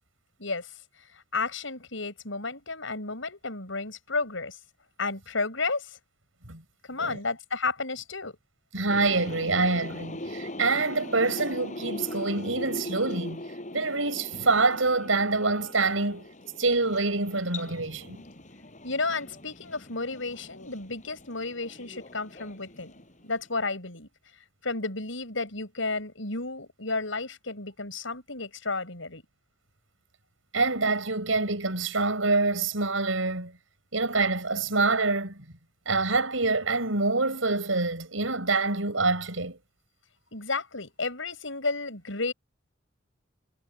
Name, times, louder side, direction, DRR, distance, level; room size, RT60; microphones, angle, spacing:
voice 1, 0.4-0.7 1.1-4.6 5.0-6.0 6.9-8.4 18.8-22.9 23.2-24.1 24.6-29.2 40.3-42.3, left 3 dB, 75° left, 7.8 m, -32 dB
voice 2, 8.7-13.4 13.7-16.3 16.6-18.2 30.5-33.5 33.9-35.4 35.9-39.6, right 3 dB, 85° right, 6.2 m, -26 dB
sound 1, 8.9-23.4, left 1 dB, 40° left, 7.4 m, -41 dB
head